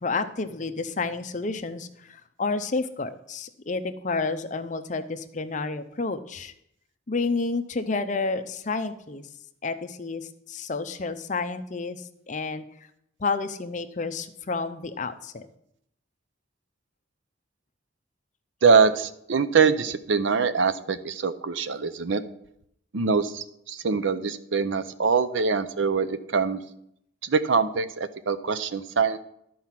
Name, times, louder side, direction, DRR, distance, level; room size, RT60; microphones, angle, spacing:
voice 1, 0.0-6.5 7.1-9.3 9.6-12.6 13.2-15.5, left 3 dB, 40° left, 10 dB, 0.6 m, -30 dB
voice 2, 18.6-22.2 22.9-26.6 27.2-29.2, right 5 dB, 70° right, 12 dB, 0.6 m, -23 dB
12.5 x 4.7 x 5.8 m, 0.75 s
head